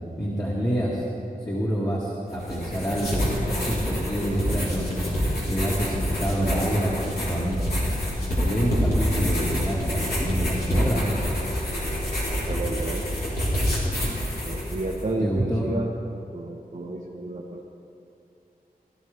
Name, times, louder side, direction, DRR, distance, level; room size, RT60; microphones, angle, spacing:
voice 1, 0.2-1.0 1.4-5.0 5.4-7.6 8.4-11.1 15.2-15.7, equal, 25° left, -7 dB, 2.2 m, -27 dB
sound 1, 2.3-15.0, equal, 80° left, 3.6 m, -27 dB
voice 2, 12.5-13.0 14.4-15.9 16.3-17.6, right 2 dB, 55° right, -4 dB, 1.2 m, -31 dB
17.5 x 12.5 x 3.6 m, 2.8 s
wide cardioid pair, 70°, 16 cm